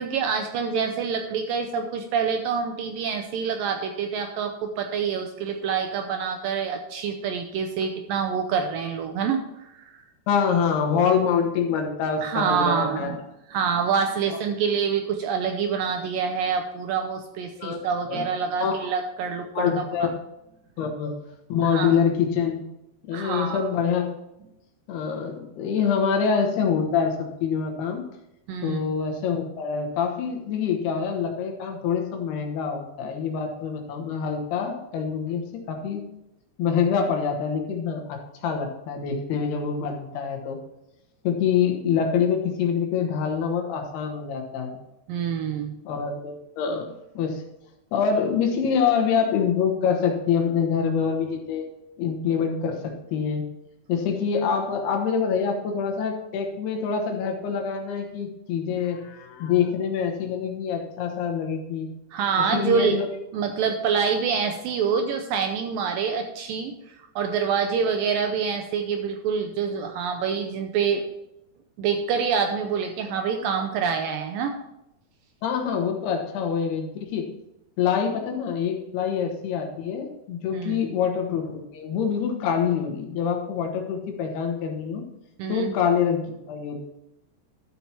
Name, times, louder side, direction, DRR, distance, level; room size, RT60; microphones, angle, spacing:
voice 1, 0.0-10.0 12.2-13.2 13.5-20.1 21.6-22.0 23.1-23.7 28.5-28.8 45.1-45.8 62.1-63.0 63.3-71.0 71.8-74.6 80.5-80.9 85.4-85.7, right 6 dB, 80° right, 5 dB, 2.1 m, -26 dB
voice 2, 10.3-13.1 14.3-14.4 17.6-17.8 18.1-18.2 18.6-18.8 19.5-20.1 20.8-21.2 21.5-22.6 23.0-24.1 24.9-28.1 28.6-36.0 36.6-40.6 41.2-44.8 45.8-47.4 47.9-51.7 52.0-53.4 53.9-61.9 62.5-63.1 75.4-77.2 77.8-85.1 85.5-86.8, left 7 dB, 80° left, 3 dB, 3.2 m, -25 dB
12.5 x 5.8 x 4.4 m, 0.87 s
omnidirectional pair, 4.6 m